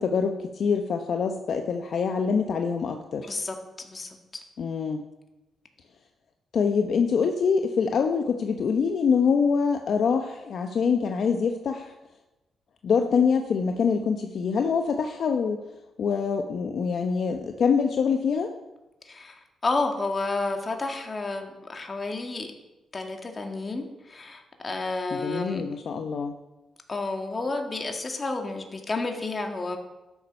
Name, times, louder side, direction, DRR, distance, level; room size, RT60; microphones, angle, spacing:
voice 1, 0.0-3.3 4.6-5.1 6.5-11.9 12.8-15.6 16.0-18.5 25.1-26.4, left 6 dB, 65° left, 5 dB, 0.8 m, -25 dB
voice 2, 3.2-4.4 19.1-22.5 22.9-25.7 26.9-29.8, left 3 dB, 40° left, 4 dB, 2.1 m, -31 dB
12.5 x 7.3 x 5.3 m, 1.0 s
supercardioid pair, 60°, 0 cm